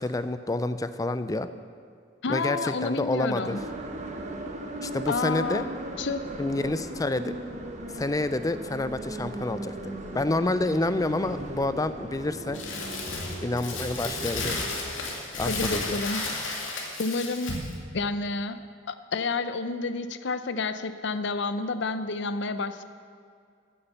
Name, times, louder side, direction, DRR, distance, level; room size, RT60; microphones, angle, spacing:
voice 1, 0.0-1.5 2.3-3.6 4.8-5.6 6.4-7.3 7.9-12.6 13.4-14.6 15.3-16.0, left 2 dB, 20° left, 12 dB, 0.5 m, -28 dB
voice 2, 2.2-3.6 5.1-5.7 6.0-6.2 15.4-16.2 17.0-17.6 17.9-18.6 18.9-22.8, left 3 dB, 65° left, 11 dB, 0.7 m, -30 dB
sound 1, 3.4-14.8, right 1 dB, 40° right, 1.2 m, -37 dB
Crumpling crinkling, 12.5-17.8, left 3 dB, 90° left, 2.3 m, -33 dB
14.0 x 8.6 x 7.0 m, 2.2 s
head